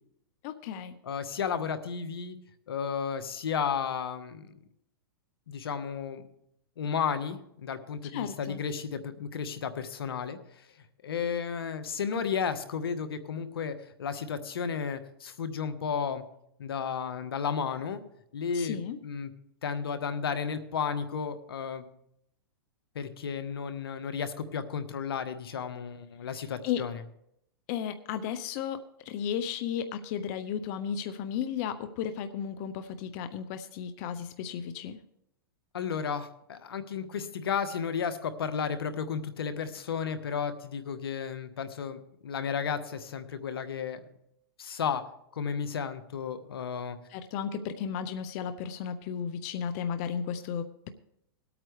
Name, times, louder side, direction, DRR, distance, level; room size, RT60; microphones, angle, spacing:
voice 1, 0.4-1.0 8.1-8.6 18.5-19.0 26.6-26.8 27.7-35.0 47.1-50.9, left 8 dB, 45° left, 10 dB, 0.8 m, -34 dB
voice 2, 1.0-2.4 2.7-4.5 5.5-6.2 6.8-10.7 11.0-16.2 16.6-18.0 18.3-19.3 19.6-21.9 22.9-27.0 35.7-44.0 44.6-45.0 45.3-47.0, left 6 dB, 85° left, 10 dB, 1.3 m, -33 dB
20.5 x 8.8 x 3.3 m, 0.76 s
hypercardioid pair, 130°, 12 cm